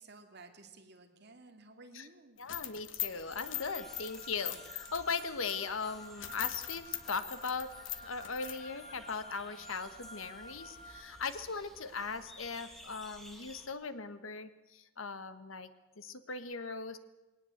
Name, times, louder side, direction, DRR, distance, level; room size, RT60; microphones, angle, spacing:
voice 1, 0.0-2.4, right 3 dB, 55° right, 5 dB, 2.7 m, -55 dB
voice 2, 2.4-7.7 8.0-15.7 16.0-17.0, left 4 dB, 80° left, 12 dB, 1.4 m, -39 dB
sound 1, 2.4-5.5 5.9-6.0 6.2-8.6, left 13 dB, 65° left, 1.3 m, -41 dB
sound 2, 3.1-13.7, equal, ahead, 2.1 m, -56 dB
Wind instrument woodwind instrument, 3.3-11.1, equal, 35° left, 5.5 m, -52 dB
21.0 x 18.5 x 8.0 m, 1.1 s
head